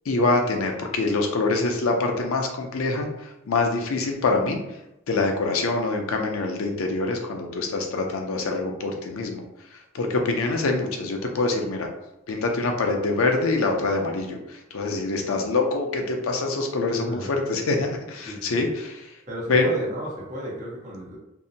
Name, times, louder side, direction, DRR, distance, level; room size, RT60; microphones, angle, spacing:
voice 1, 0.1-4.6 5.1-9.4 9.9-11.9 12.3-19.1 19.5-19.7, left 3 dB, 80° left, 3 dB, 0.5 m, -25 dB
voice 2, 18.3-18.7 19.3-21.2, right 1 dB, 35° right, -6 dB, 0.8 m, -34 dB
2.7 x 2.1 x 2.7 m, 0.88 s
head